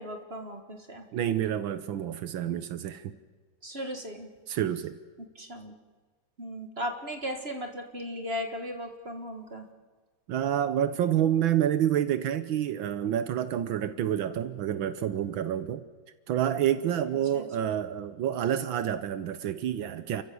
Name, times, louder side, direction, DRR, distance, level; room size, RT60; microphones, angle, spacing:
voice 1, 0.0-1.1 3.6-4.3 5.4-5.7 6.4-9.7 17.3-17.7, equal, 30° right, 5 dB, 1.9 m, -37 dB
voice 2, 1.1-3.1 4.5-5.0 10.3-15.8 16.3-20.2, right 10 dB, 80° right, 12 dB, 1.6 m, -28 dB
30.0 x 15.0 x 6.9 m, 1.5 s
omnidirectional pair, 2.2 m